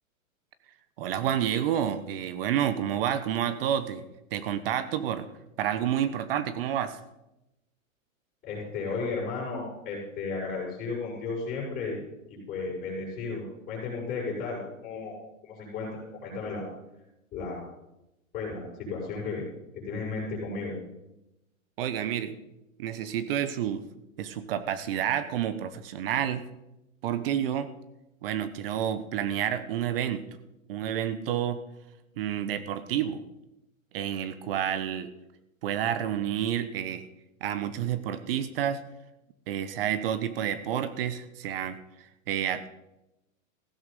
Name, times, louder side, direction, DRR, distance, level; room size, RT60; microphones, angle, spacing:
voice 1, 1.0-4.1 4.3-5.3 5.6-7.0 21.8-22.4 22.8-23.8 24.2-26.5 27.0-27.7 28.2-30.3 30.7-31.6 32.2-33.2 33.9-35.1 35.6-37.1 37.4-38.8 39.5-42.7, right 10 dB, 45° right, 13 dB, 1.0 m, -29 dB
voice 2, 8.4-12.0 12.3-15.2 15.4-16.6 17.3-17.6 18.3-19.4 19.7-20.8, left 4 dB, 20° left, -7 dB, 6.6 m, -34 dB
15.5 x 12.5 x 5.3 m, 0.91 s
hypercardioid pair, 150°, 41 cm